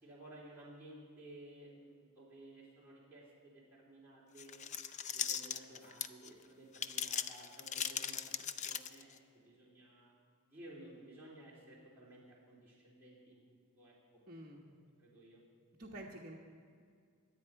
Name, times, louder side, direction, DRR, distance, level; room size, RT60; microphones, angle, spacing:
voice 1, 0.0-4.6 5.1-10.1 10.5-13.9 15.0-15.4, right 1 dB, 10° right, -8 dB, 3.4 m, -56 dB
sound 1, 4.4-6.3 6.7-9.2, left 8 dB, 35° left, 0.4 m, -39 dB
voice 2, 14.3-14.7 15.8-16.4, right 1 dB, 40° right, -4 dB, 1.2 m, -49 dB
23.5 x 9.0 x 4.7 m, 2.1 s
head